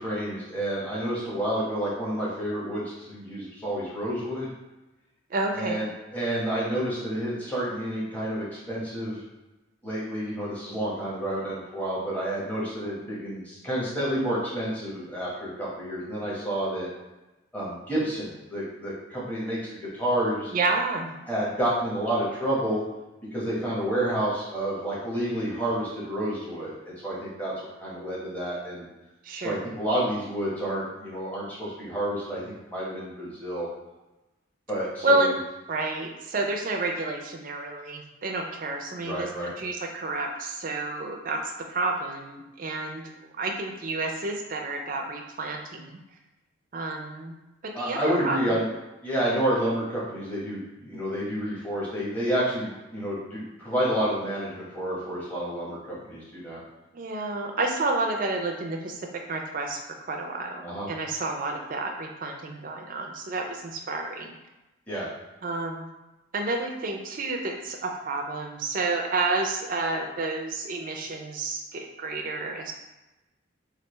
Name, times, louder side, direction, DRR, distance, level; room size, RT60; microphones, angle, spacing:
voice 1, 0.0-4.5 5.5-9.2 9.8-16.9 17.5-20.5 21.3-22.8 23.3-27.5 27.8-28.9 29.4-32.4 32.7-33.7 34.7-35.2 39.0-39.5 47.7-48.7 49.0-56.6 60.6-60.9 64.9-65.1, right 1 dB, 10° left, -8 dB, 0.9 m, -29 dB
voice 2, 5.3-5.9 20.5-21.2 29.2-29.7 35.0-35.3 35.7-43.0 43.4-46.0 46.7-47.3 47.6-48.6 56.9-59.0 59.3-59.8 60.1-64.3 65.4-65.9 66.3-72.7, right 2 dB, 40° right, 3 dB, 0.4 m, -30 dB
3.3 x 2.4 x 3.0 m, 1.0 s
head